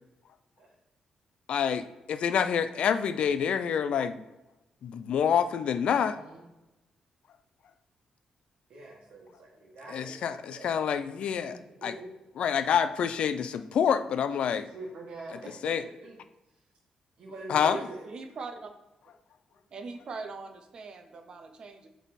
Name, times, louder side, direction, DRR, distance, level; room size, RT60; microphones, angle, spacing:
voice 1, 1.5-4.2 4.8-6.2 9.9-11.5 11.8-11.9 12.4-14.7 15.6-15.8 17.5-17.8, left 8 dB, 60° left, 11 dB, 0.4 m, -27 dB
voice 2, 5.9-6.4 8.7-10.8 11.5-12.0 14.1-16.2 17.2-18.0, right 2 dB, 60° right, -3 dB, 1.6 m, -45 dB
voice 3, 17.6-18.7 19.7-21.9, right 4 dB, 40° right, 7 dB, 0.7 m, -41 dB
7.1 x 3.6 x 4.1 m, 1.0 s
wide cardioid pair, 175°, 2 cm